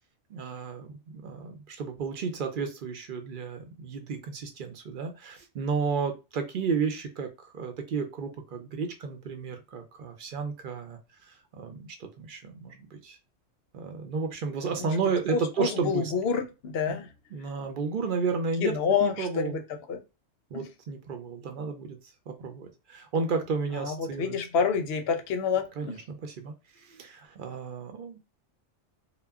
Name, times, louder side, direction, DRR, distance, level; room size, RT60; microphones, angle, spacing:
voice 1, 0.3-11.0 11.3-13.2 13.7-16.1 16.9-17.0 17.3-18.8 19.0-19.6 20.5-22.0 22.3-24.4 25.8-28.2, right 5 dB, 55° right, 0.7 m, -32 dB
voice 2, 15.3-17.1 18.6-19.6 19.9-20.0 20.5-20.7 23.8-26.0, left 6 dB, 65° left, 0.7 m, -28 dB
2.2 x 2.1 x 3.4 m
omnidirectional pair, 1.2 m